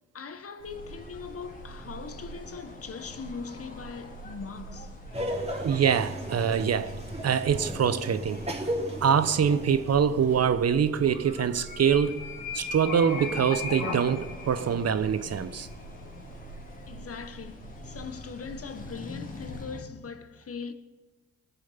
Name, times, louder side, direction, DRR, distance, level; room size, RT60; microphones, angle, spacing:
voice 1, 0.1-4.9 16.9-20.7, left 5 dB, 45° left, 1.3 m, -40 dB
sound 1, 0.6-19.6, left 2 dB, 75° left, 2.6 m, -42 dB
sound 2, 0.7-19.8, left 2 dB, 25° left, 2.4 m, -47 dB
Laughter, 5.1-10.2, equal, 20° right, 2.9 m, -35 dB
voice 2, 5.6-7.0 7.2-8.4 9.0-12.2 12.5-15.7, right 7 dB, 50° right, 0.8 m, -24 dB
19.5 x 7.1 x 5.7 m
supercardioid pair, 50°, 32 cm